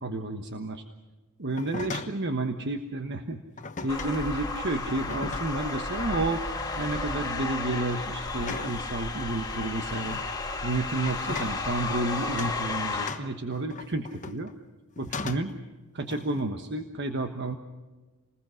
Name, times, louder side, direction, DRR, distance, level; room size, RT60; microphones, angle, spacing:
voice 1, 0.0-0.8 1.4-3.4 3.8-6.4 6.8-10.2 10.6-14.5 15.0-15.5 15.9-17.6, right 2 dB, 55° right, 6 dB, 1.2 m, -31 dB
sound 1, 1.5-2.3 3.6-4.2 4.9-5.7 6.1-6.4 6.9-7.3 8.4-8.9 9.6-10.3 11.0-11.6 12.3-12.6 13.1-14.6 15.0-15.6 16.1-16.5, left 4 dB, 35° left, 1.0 m, -38 dB
sound 2, 3.9-13.1, left 3 dB, 20° left, 2.4 m, -33 dB
28.0 x 20.5 x 6.3 m, 1.3 s
head